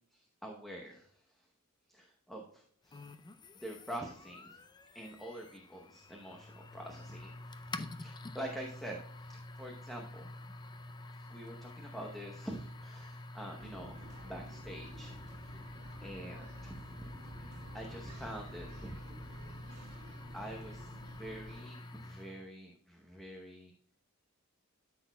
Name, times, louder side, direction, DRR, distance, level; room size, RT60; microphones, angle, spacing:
voice 1, 0.1-1.5 1.9-3.0 3.6-4.6 4.9-10.2 11.1-19.0 20.3-23.7, right 1 dB, ahead, 0 dB, 0.8 m, -46 dB
sound 1, 2.9-22.5, left 2 dB, 20° left, 0.4 m, -48 dB
sound 2, 13.6-21.6, right 1 dB, 30° right, 2.0 m, -51 dB
12.5 x 6.0 x 2.2 m, 0.64 s
head